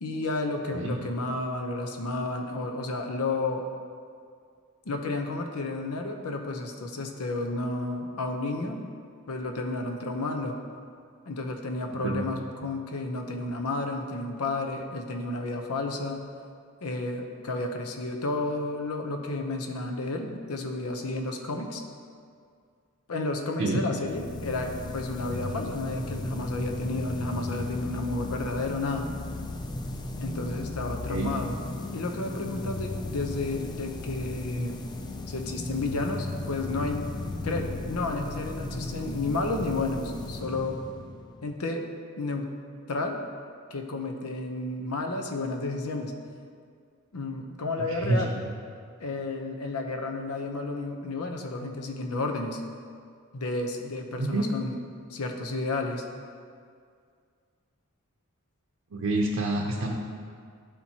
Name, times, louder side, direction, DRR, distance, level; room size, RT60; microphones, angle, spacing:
voice 1, 0.0-3.7 4.9-8.9 9.3-10.6 11.3-16.3 16.8-21.8 23.1-29.1 30.2-31.6 31.9-34.8 35.3-37.1 37.4-40.8 41.4-41.8 42.2-42.5 42.9-43.2 43.7-46.1 47.1-48.3 49.0-52.6 53.3-54.8 55.1-56.0, left 2 dB, 90° left, 4 dB, 0.7 m, -31 dB
voice 2, 11.9-12.2 23.6-23.8 31.1-31.3 47.8-48.2 54.2-54.5 58.9-59.9, right 2 dB, 65° right, -2 dB, 0.7 m, -28 dB
sound 1, 24.1-41.6, left 2 dB, 20° left, 0.4 m, -36 dB
11.5 x 4.4 x 2.8 m, 2.2 s
head